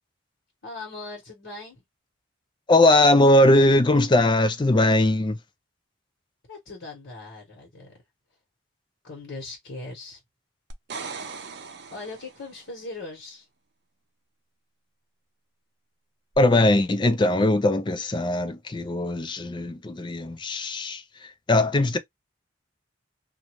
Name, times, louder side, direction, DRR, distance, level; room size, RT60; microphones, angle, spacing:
voice 1, 0.6-1.8 6.5-7.9 9.0-10.2 11.9-13.5, left 2 dB, 70° left, 1.3 m, -39 dB
voice 2, 2.7-5.4 16.4-21.0 21.5-22.0, left 1 dB, 25° left, 0.4 m, -20 dB
sound 1, 10.7-12.6 16.3-16.4, right 5 dB, 55° right, 0.5 m, -38 dB
2.5 x 2.3 x 2.9 m
head